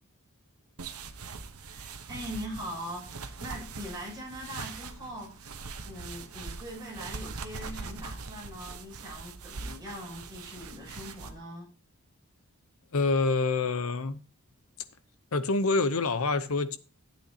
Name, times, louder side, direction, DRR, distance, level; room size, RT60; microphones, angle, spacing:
sound 1, 0.8-11.3, right 4 dB, 80° right, 1.1 m, -42 dB
voice 1, 1.6-5.6 5.8-11.7, equal, 20° right, 6.2 m, -41 dB
voice 2, 12.9-14.2 15.3-16.8, left 3 dB, 70° left, 0.8 m, -26 dB
13.0 x 8.6 x 2.8 m
head